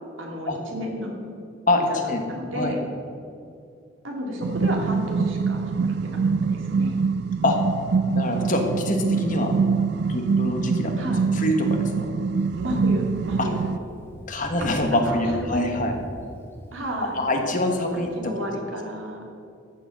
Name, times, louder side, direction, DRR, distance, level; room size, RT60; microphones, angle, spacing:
voice 1, 0.2-1.1 1.9-2.8 4.0-6.2 6.5-7.0 11.0-11.3 12.6-13.7 14.9-15.7 16.7-17.2 17.9-19.2, equal, 80° right, 0 dB, 2.3 m, -32 dB
voice 2, 1.7-2.2 2.5-2.7 7.4-7.6 8.1-9.5 10.0-10.9 11.3-11.9 13.4-13.5 14.3-15.9 17.1-18.3, left 1 dB, 40° left, 3 dB, 1.3 m, -24 dB
sound 1, 4.4-13.8, right 5 dB, 55° right, 0.3 m, -24 dB
Thunder, 12.4-18.1, equal, 10° left, 1.2 m, -41 dB
14.0 x 4.9 x 7.6 m, 2.5 s
head